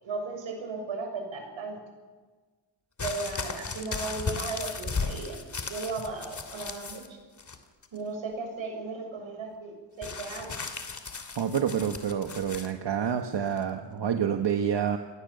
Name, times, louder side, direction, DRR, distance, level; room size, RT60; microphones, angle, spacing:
voice 1, 0.0-1.8 3.0-5.4 5.7-7.2 7.9-10.5, right 3 dB, 80° right, 3 dB, 6.5 m, -36 dB
sound 1, 3.0-7.1 7.4-8.0 10.0-12.7 13.6-13.7, left 4 dB, 40° left, 2.7 m, -36 dB
voice 2, 11.4-15.0, right 8 dB, 60° right, 5 dB, 1.5 m, -28 dB
28.0 x 18.5 x 6.8 m, 1.4 s
cardioid pair, 85°, 46 cm